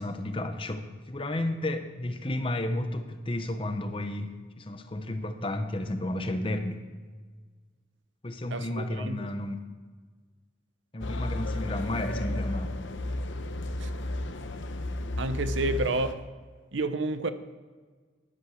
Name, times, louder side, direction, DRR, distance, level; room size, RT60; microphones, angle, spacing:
voice 1, 0.0-6.8 8.2-9.6 10.9-12.7, left 1 dB, 25° left, 0.7 m, -32 dB
voice 2, 8.5-9.3 13.8-13.9 15.2-16.2 16.7-17.3, right 2 dB, 75° right, 0.7 m, -30 dB
sound 1, 11.0-16.1, left 1 dB, 75° left, 0.8 m, -33 dB
11.0 x 7.8 x 6.3 m
head